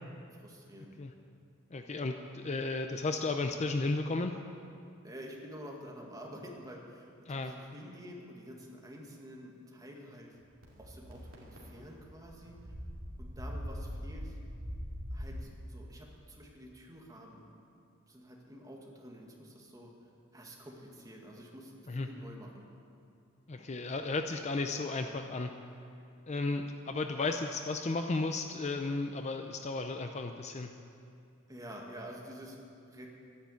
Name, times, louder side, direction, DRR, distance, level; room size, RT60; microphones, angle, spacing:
voice 1, 0.3-0.9 5.0-7.1 7.4-10.4 10.8-12.6 13.2-14.4 15.1-17.5 18.1-19.9 20.3-22.7 31.5-33.1, equal, 15° right, -1 dB, 1.8 m, -49 dB
voice 2, 1.7-4.3 7.3-7.5 21.9-22.1 23.5-25.5 26.3-30.7, left 3 dB, 30° left, 6 dB, 0.5 m, -34 dB
sound 1, 10.6-15.4, equal, 70° right, 2.4 m, -42 dB
12.0 x 10.5 x 8.3 m, 2.4 s
head